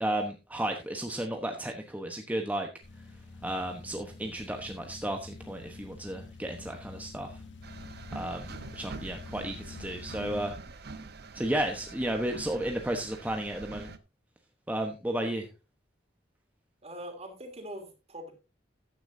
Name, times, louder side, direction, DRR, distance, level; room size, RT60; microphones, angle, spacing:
voice 1, 0.0-2.7 3.4-7.4 8.1-10.5 11.3-13.9 14.7-15.5, right 1 dB, 10° right, 3 dB, 1.0 m, -33 dB
sound 1, 2.8-10.5, left 3 dB, 85° left, 1.5 m, -47 dB
sound 2, 7.6-14.0, right 3 dB, 60° right, 0.9 m, -45 dB
voice 2, 16.8-18.3, equal, 35° right, 4 dB, 3.1 m, -42 dB
14.0 x 10.0 x 2.7 m, 0.28 s
head